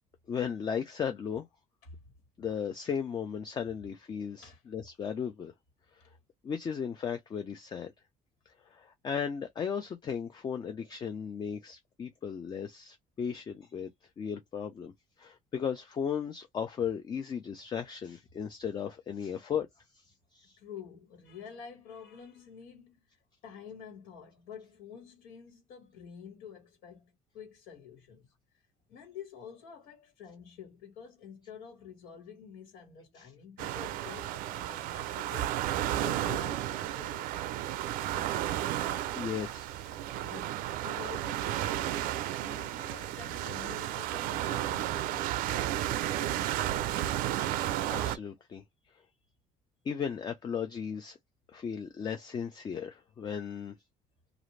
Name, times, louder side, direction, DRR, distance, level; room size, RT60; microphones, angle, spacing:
voice 1, 0.3-1.5 2.4-5.5 5.9-6.0 6.4-7.9 8.7-13.9 14.2-19.7 19.9-20.1 20.3-20.6 33.2-33.3 35.9-36.0 38.0-38.6 39.2-40.3 46.7-47.6 47.9-48.6 48.9-49.0 49.8-51.2 51.5-53.8, left 7 dB, 30° left, 0.5 m, -36 dB
voice 2, 20.6-28.6 28.9-37.3 38.9-39.5 40.2-45.3, left 7 dB, 90° left, 1.6 m, -49 dB
sound 1, 33.6-48.2, right 13 dB, 90° right, 0.4 m, -33 dB
2.5 x 2.5 x 3.1 m
cardioid pair, 150°, 14 cm